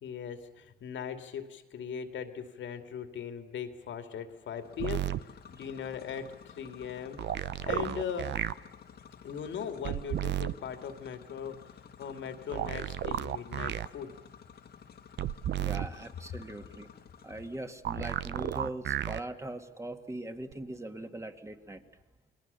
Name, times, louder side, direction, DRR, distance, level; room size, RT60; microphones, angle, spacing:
voice 1, 0.0-7.2 7.6-8.4 9.2-14.1, left 7 dB, 70° left, 7 dB, 2.5 m, -39 dB
sound 1, 4.4-17.8, left 7 dB, 55° left, 1.7 m, -53 dB
sound 2, 4.8-5.2 7.2-8.5 9.8-10.5 12.5-13.9 15.2-15.9 17.8-19.2 20.5-20.6, right 11 dB, 60° right, 0.7 m, -33 dB
voice 2, 15.6-16.9 17.2-21.8, right 1 dB, 15° right, 6 dB, 2.1 m, -41 dB
29.5 x 21.5 x 7.0 m, 1.1 s
cardioid pair, 90°, 20 cm